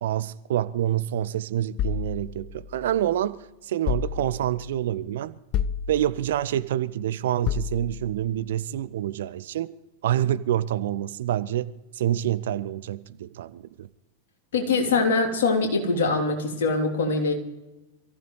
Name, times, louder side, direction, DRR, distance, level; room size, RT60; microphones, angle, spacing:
voice 1, 0.0-5.4 5.9-9.7 10.0-13.9, right 11 dB, 60° right, 0.6 m, -27 dB
sound 1, 1.8-3.2 3.9-4.7 5.5-6.4 7.5-8.3, left 8 dB, 35° left, 0.6 m, -31 dB
voice 2, 14.5-17.3, left 3 dB, 60° left, 3.3 m, -23 dB
27.0 x 15.0 x 3.2 m
figure-of-eight pair, 90°, 0 cm